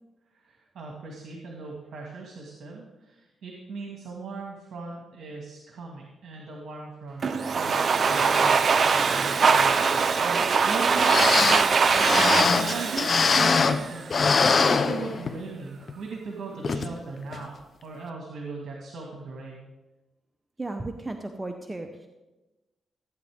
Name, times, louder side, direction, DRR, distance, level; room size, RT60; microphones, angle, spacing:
voice 1, 0.3-7.3 7.6-11.7 12.3-14.0 14.4-17.5 17.8-19.6, right 4 dB, 70° right, -1 dB, 1.9 m, -39 dB
Domestic sounds home sounds, 7.2-14.1, right 5 dB, 55° right, 0.7 m, -22 dB
sound 1, 10.7-10.8 11.0-13.9 14.1-15.5 15.9-16.0 16.6-16.9 17.3-17.4, left 4 dB, 50° left, 0.8 m, -23 dB
voice 2, 20.6-22.1, right 2 dB, 20° right, 5 dB, 0.9 m, -35 dB
15.5 x 9.2 x 3.6 m, 1.1 s
cardioid pair, 75°, 0 cm